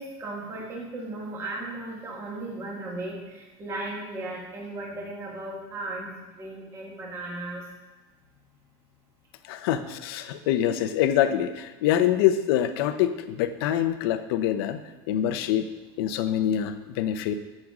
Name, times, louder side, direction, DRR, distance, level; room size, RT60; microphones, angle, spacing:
voice 1, 0.0-7.7, right 2 dB, 20° right, -3 dB, 2.0 m, -36 dB
voice 2, 9.5-14.8 15.1-15.7 16.0-17.3, left 11 dB, 75° left, 10 dB, 0.8 m, -25 dB
10.5 x 7.6 x 5.0 m, 1.2 s
cardioid pair, 175°, 13 cm